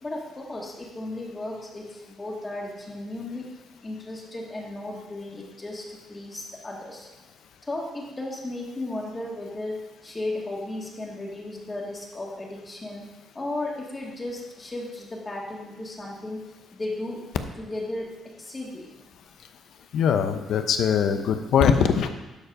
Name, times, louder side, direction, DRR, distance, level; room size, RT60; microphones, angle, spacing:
voice 1, 0.0-3.5 3.8-7.1 7.6-13.0 13.3-16.4 16.7-17.3 17.6-18.9, left 2 dB, 25° left, -2 dB, 2.3 m, -35 dB
voice 2, 19.9-22.1, left 7 dB, 75° left, 8 dB, 0.8 m, -21 dB
12.0 x 4.7 x 4.9 m, 1.1 s
cardioid pair, 90°, 0 cm